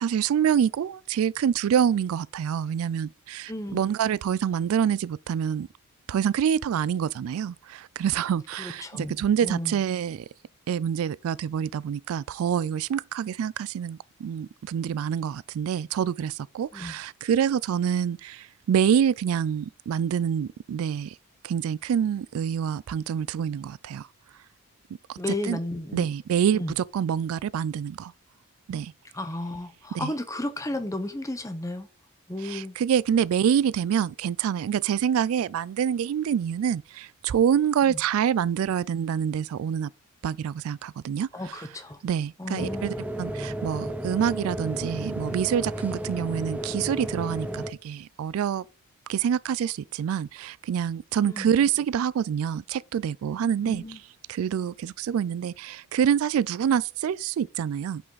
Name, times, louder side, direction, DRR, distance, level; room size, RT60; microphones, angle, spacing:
voice 1, 0.0-5.7 6.1-10.2 10.7-21.1 21.4-24.1 25.1-25.2 25.4-25.6 25.9-28.1 28.7-28.9 29.9-30.1 32.4-39.9 40.2-41.3 42.0-48.6 49.1-53.8 54.3-58.0, right 8 dB, 80° right, 0.3 m, -26 dB
voice 2, 3.5-3.8 8.5-9.1 9.4-9.8 16.7-16.9 25.2-26.1 26.5-26.8 29.1-31.9 32.3-32.8 37.8-38.0 41.3-42.0 42.4-42.8 51.3-51.5 53.6-54.0, left 1 dB, 15° left, 0.9 m, -33 dB
sound 1, 42.6-47.7, right 1 dB, 5° right, 0.5 m, -33 dB
8.5 x 5.6 x 4.0 m
head